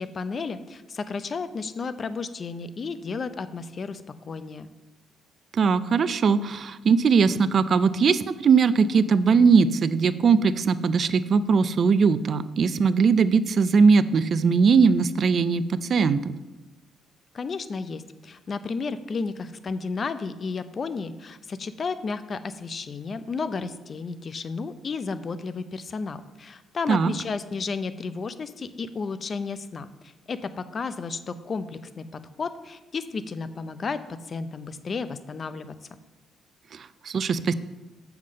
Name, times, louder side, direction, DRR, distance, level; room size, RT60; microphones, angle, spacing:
voice 1, 0.0-4.7 17.3-35.7, left 4 dB, 45° left, 12 dB, 0.6 m, -33 dB
voice 2, 5.5-16.3 26.9-27.1 36.7-37.5, right 5 dB, 50° right, 14 dB, 0.5 m, -20 dB
7.4 x 5.8 x 6.3 m, 1.1 s
cardioid pair, 90°, 0 cm